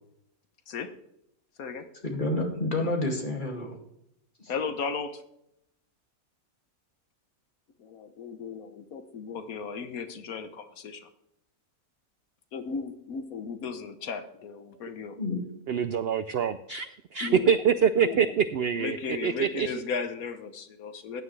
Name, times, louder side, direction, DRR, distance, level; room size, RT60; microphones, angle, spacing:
voice 1, 2.0-3.8 4.4-4.5 15.2-15.4, left 2 dB, 35° left, 1 dB, 2.5 m, -29 dB
voice 2, 4.5-5.2 7.8-11.1 12.5-15.2 17.2-17.6 18.0-18.4 18.7-21.2, left 5 dB, 75° left, 9 dB, 1.4 m, -35 dB
voice 3, 15.7-16.9 17.1-19.0 19.2-19.7, right 7 dB, 70° right, 13 dB, 0.5 m, -25 dB
15.0 x 9.6 x 3.3 m, 0.79 s
omnidirectional pair, 1.5 m